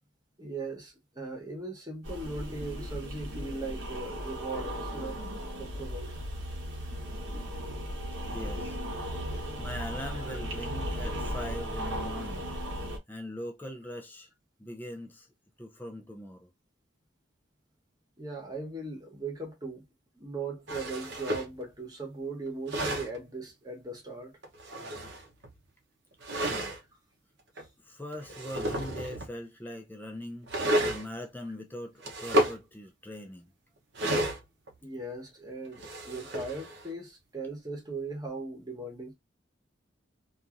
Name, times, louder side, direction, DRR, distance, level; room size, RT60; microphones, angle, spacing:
voice 1, 0.4-5.2 5.6-6.2 10.1-10.4 18.2-19.9 20.1-24.4 27.6-27.7 34.8-39.1, right 3 dB, 20° right, 1.0 m, -39 dB
sound 1, 2.0-13.0, equal, 80° right, 1.1 m, -36 dB
voice 2, 8.3-8.8 9.6-12.5 13.1-14.3 14.6-15.3 15.6-16.5 26.3-26.8 27.8-30.5 30.9-33.5, left 1 dB, 10° left, 0.4 m, -41 dB
sound 2, 20.7-21.6 22.5-23.2 24.4-25.5 26.2-26.8 27.6-27.7 28.1-29.3 30.5-31.1 32.0-32.6 33.9-34.8 35.7-36.9, right 1 dB, 60° right, 0.8 m, -31 dB
2.8 x 2.6 x 2.4 m
head